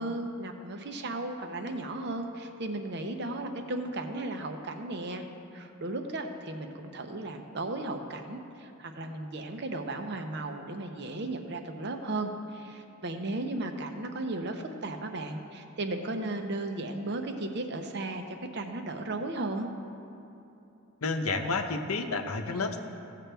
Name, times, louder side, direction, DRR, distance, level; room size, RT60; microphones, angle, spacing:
voice 1, 0.0-5.2 5.5-19.7, right 2 dB, 55° right, 5 dB, 0.8 m, -35 dB
voice 2, 21.0-22.8, left 3 dB, 85° left, 5 dB, 0.8 m, -30 dB
16.0 x 7.6 x 3.4 m, 2.9 s
head